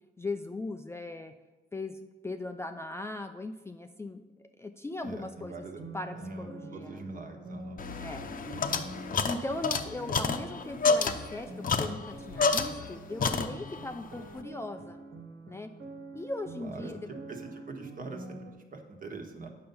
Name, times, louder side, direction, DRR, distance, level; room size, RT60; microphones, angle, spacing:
voice 1, 0.2-1.3 1.7-5.5 5.9-7.0 8.0-8.8 9.3-15.0 15.5-15.7 16.1-17.1, left 2 dB, 15° left, 6 dB, 0.4 m, -39 dB
voice 2, 5.0-5.8 6.2-7.8 8.7-8.9 16.6-16.9 17.3-19.5, right 3 dB, 45° right, 3 dB, 1.5 m, -43 dB
sound 1, 5.4-18.5, right 2 dB, 70° right, 1.8 m, -46 dB
sound 2, 7.8-12.9 13.2-13.9, left 4 dB, 45° left, 0.8 m, -29 dB
8.7 x 5.7 x 5.4 m, 1.2 s
cardioid pair, 90°, 20 cm